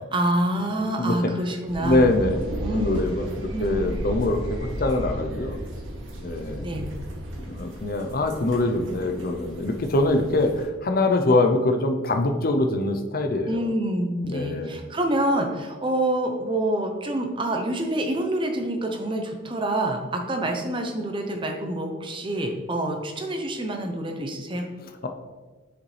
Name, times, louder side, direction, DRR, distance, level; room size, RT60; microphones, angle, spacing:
voice 1, 0.1-2.0 2.6-3.0 3.5-3.8 6.6-6.9 13.5-24.7, right 1 dB, 25° right, 4 dB, 0.7 m, -27 dB
voice 2, 1.0-1.3 1.8-2.4 2.7-5.6 6.2-6.7 7.4-13.7 14.2-14.8 24.8-25.1, left 2 dB, 45° left, 5 dB, 0.6 m, -24 dB
sound 1, 1.7-10.7, equal, 75° right, 1.4 m, -34 dB
6.9 x 5.1 x 3.3 m, 1.3 s
head